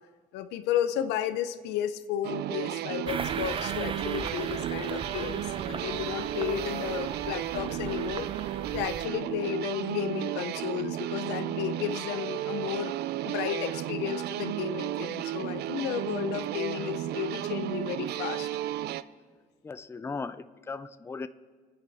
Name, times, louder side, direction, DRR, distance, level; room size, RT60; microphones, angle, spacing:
voice 1, 0.3-8.3 8.7-13.0 13.2-18.5, left 10 dB, 90° left, 11 dB, 0.8 m, -33 dB
sound 1, 2.2-19.0, right 13 dB, 75° right, 0.5 m, -33 dB
sound 2, 3.0-9.1, right 6 dB, 30° right, 0.7 m, -38 dB
voice 2, 19.6-21.3, left 4 dB, 15° left, 12 dB, 0.4 m, -37 dB
27.0 x 9.7 x 4.2 m, 1.5 s
cardioid pair, 110°, 17 cm